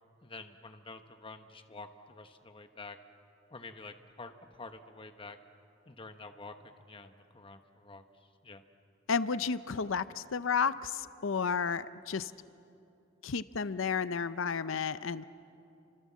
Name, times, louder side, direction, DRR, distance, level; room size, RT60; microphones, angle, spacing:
voice 1, 0.2-3.0 3.5-5.4 5.9-8.6, left 3 dB, 25° left, 7 dB, 1.1 m, -48 dB
voice 2, 9.1-12.3 13.2-15.2, left 5 dB, 70° left, 15 dB, 0.6 m, -32 dB
29.5 x 26.0 x 7.4 m, 2.8 s
head